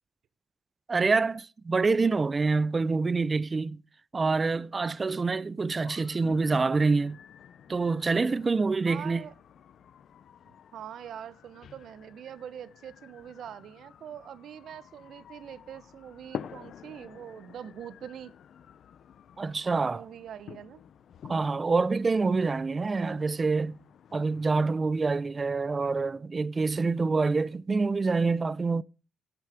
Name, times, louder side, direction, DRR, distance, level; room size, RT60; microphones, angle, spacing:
voice 1, 0.9-3.8 4.1-7.2 7.7-9.2 19.4-20.0 21.3-23.8 24.1-28.8, right 4 dB, 30° right, 0.6 m, -26 dB
sound 1, 5.7-24.7, left 8 dB, 65° left, 0.7 m, -49 dB
voice 2, 8.9-9.3 10.7-18.3 19.8-20.8, right 9 dB, 70° right, 1.2 m, -43 dB
17.0 x 8.2 x 5.1 m
cardioid pair, 90°, 0 cm